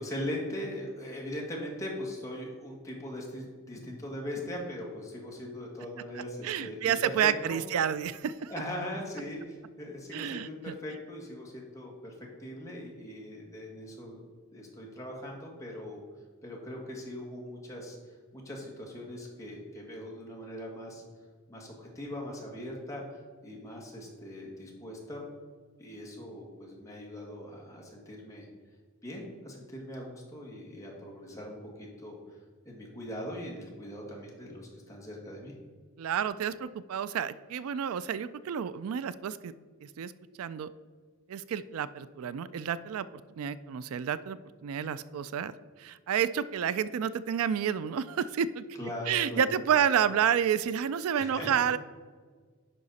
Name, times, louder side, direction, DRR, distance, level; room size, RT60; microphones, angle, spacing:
voice 1, 0.0-7.6 8.5-12.1 12.4-14.2 14.5-16.0 16.4-18.0 18.3-21.0 21.5-25.2 25.8-28.5 29.0-32.2 32.7-35.5 48.8-49.5 51.1-51.7, left 1 dB, 15° left, -3 dB, 1.8 m, -40 dB
voice 2, 6.1-8.5 10.1-10.7 36.0-39.5 39.8-40.1 40.4-40.7 41.3-43.1 43.4-48.6 49.1-51.8, right 8 dB, 80° right, 16 dB, 0.3 m, -30 dB
9.9 x 5.7 x 4.1 m, 1.5 s
head